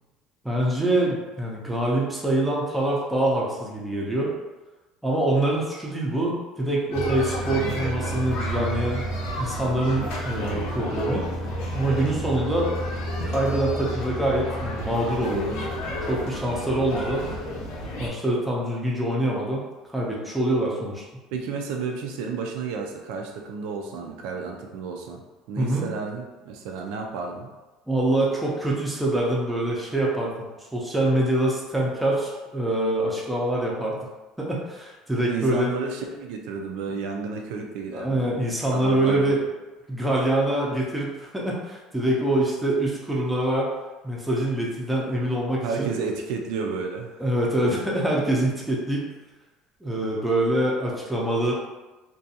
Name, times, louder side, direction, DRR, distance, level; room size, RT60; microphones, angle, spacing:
voice 1, 0.4-4.3 5.0-9.0 9.3-11.2 11.7-12.7 13.3-15.6 16.0-17.3 18.0-19.7 19.9-21.0 25.6-25.8 27.9-30.3 30.6-34.0 34.4-35.7 37.9-39.4 39.9-43.7 44.0-45.9 47.2-49.1 49.8-51.5, right 1 dB, 5° right, -4 dB, 0.5 m, -25 dB
sound 1, 6.9-18.1, equal, 80° left, 0.6 m, -30 dB
voice 2, 21.3-25.2 25.5-27.5 35.3-38.3 38.7-39.4 45.6-47.3, right 5 dB, 75° right, 2 dB, 0.4 m, -31 dB
2.5 x 2.2 x 2.7 m, 1.1 s
cardioid pair, 160°, 0 cm